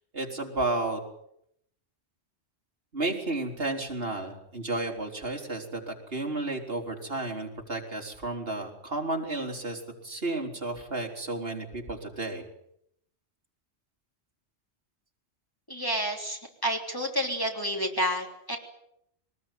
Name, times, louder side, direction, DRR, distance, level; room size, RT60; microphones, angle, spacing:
voice 1, 0.1-1.0 2.9-12.4, right 2 dB, 55° right, 1 dB, 4.2 m, -32 dB
voice 2, 15.7-18.6, equal, 20° left, 1 dB, 3.5 m, -30 dB
23.0 x 20.0 x 9.2 m, 0.77 s
omnidirectional pair, 1.2 m